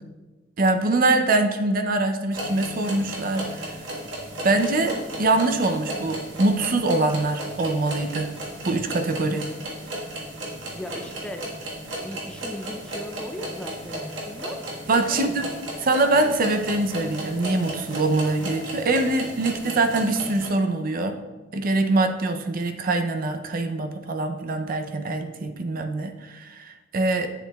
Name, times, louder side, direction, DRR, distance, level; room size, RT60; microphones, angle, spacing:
voice 1, 0.6-3.8 4.4-8.3 8.6-9.5 14.9-15.4 15.8-21.2 21.5-27.3, right 2 dB, 50° right, 7 dB, 0.5 m, -23 dB
sound 1, 2.3-20.5, right 1 dB, 80° right, 1.4 m, -35 dB
voice 2, 10.7-11.5 12.0-14.6 15.1-15.7, equal, 5° left, 4 dB, 0.4 m, -38 dB
8.1 x 7.0 x 2.3 m, 1.2 s
head